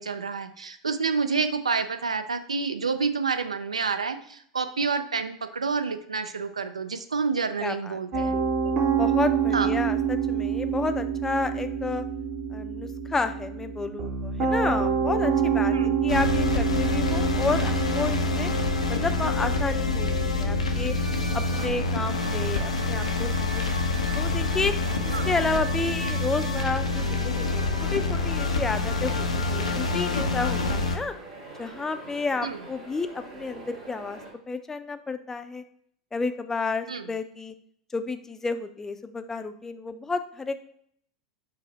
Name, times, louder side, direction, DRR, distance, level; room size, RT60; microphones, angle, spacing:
voice 1, 0.0-8.8 9.5-9.7 15.7-16.0 25.1-25.3 32.4-32.6 36.9-37.0, right 5 dB, 85° right, 9 dB, 0.3 m, -29 dB
voice 2, 7.6-8.3 9.0-12.0 12.5-18.5 18.9-20.9 21.3-23.7 24.2-24.7 25.0-31.1 31.6-34.2 34.5-35.6 36.1-37.5 37.9-40.6, left 3 dB, 15° left, 9 dB, 0.4 m, -31 dB
Piano, 8.1-25.2, right 6 dB, 45° right, 0.8 m, -28 dB
sound 1, 16.1-31.0, left 3 dB, 85° left, 0.5 m, -26 dB
sound 2, 24.8-34.3, right 2 dB, 60° right, 1.5 m, -44 dB
4.9 x 2.0 x 4.0 m, 0.67 s
figure-of-eight pair, 85°, 3 cm